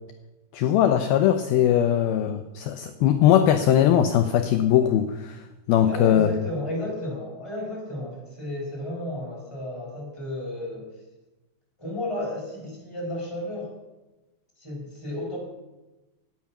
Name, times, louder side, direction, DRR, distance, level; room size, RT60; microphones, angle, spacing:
voice 1, 0.5-5.4 5.7-6.3, left 10 dB, 85° left, 8 dB, 2.1 m, -20 dB
voice 2, 5.8-10.9 11.8-13.7 14.6-15.4, left 1 dB, 5° left, -3 dB, 4.4 m, -33 dB
17.0 x 9.4 x 5.9 m, 1.1 s
omnidirectional pair, 5.2 m